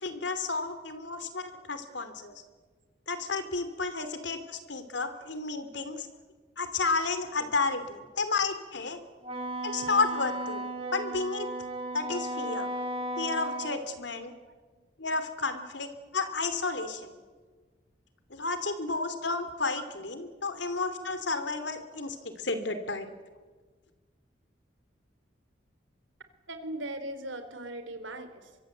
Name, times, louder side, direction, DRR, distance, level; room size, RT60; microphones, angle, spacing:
voice 1, 0.0-2.3 3.1-6.1 6.6-9.0 9.6-11.5 11.9-12.7 13.2-14.3 15.0-17.2 18.3-23.1, left 3 dB, 70° left, 10 dB, 2.7 m, -32 dB
Wind instrument woodwind instrument, 9.2-13.8, right 1 dB, 30° right, 3.3 m, -35 dB
voice 2, 14.4-14.8 15.6-15.7 20.5-20.6 26.5-28.6, right 1 dB, 90° right, 10 dB, 3.3 m, -40 dB
24.5 x 24.0 x 8.1 m, 1.4 s
head